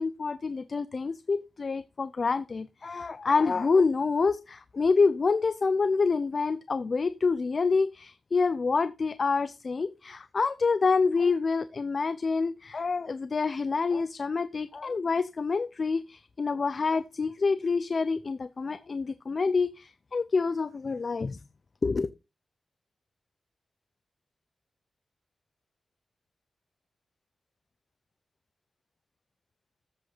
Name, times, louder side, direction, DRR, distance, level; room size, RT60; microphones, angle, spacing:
voice 1, 0.0-21.4 21.8-22.1, left 4 dB, 40° left, 0.5 m, -27 dB
13.5 x 7.9 x 3.9 m
wide cardioid pair, 165°, 0 cm